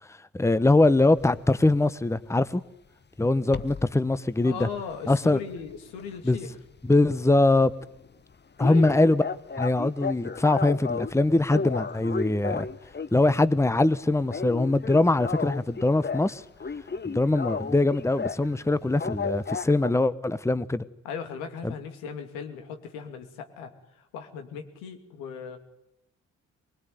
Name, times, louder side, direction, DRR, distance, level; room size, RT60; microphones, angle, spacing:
voice 1, 0.3-2.6 3.2-4.7 5.1-5.4 6.2-6.4 6.8-7.7 8.6-9.2 9.6-12.7 13.1-16.4 17.0-20.8 21.6-21.7, left 2 dB, 10° left, 1.1 m, -22 dB
sound 1, 1.2-1.4 3.5-3.9 4.4-6.5 6.8-7.0 7.3-7.4 7.7-7.8 8.0-8.1 8.6-11.1 11.5-13.2 13.6-13.9 14.2-16.3 16.6-18.5 19.0-19.9, left 5 dB, 30° left, 1.2 m, -33 dB
voice 2, 4.4-6.5 8.6-8.9 21.0-25.6, left 6 dB, 80° left, 2.8 m, -38 dB
24.0 x 20.0 x 9.6 m
hypercardioid pair, 45°, 36 cm